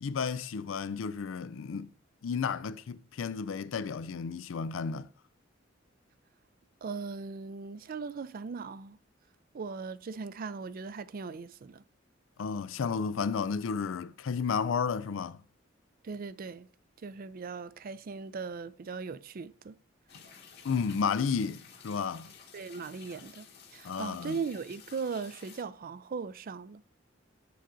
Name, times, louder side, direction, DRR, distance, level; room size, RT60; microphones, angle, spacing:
voice 1, 0.0-1.9 2.2-5.1 12.4-15.4 20.6-22.3 23.8-24.4, left 5 dB, 90° left, 0.4 m, -32 dB
voice 2, 6.8-9.0 9.5-11.8 16.0-16.7 17.0-19.8 22.5-26.9, right 5 dB, 50° right, 0.4 m, -39 dB
sound 1, 20.1-25.6, left 6 dB, 55° left, 1.3 m, -53 dB
6.8 x 3.9 x 6.2 m
head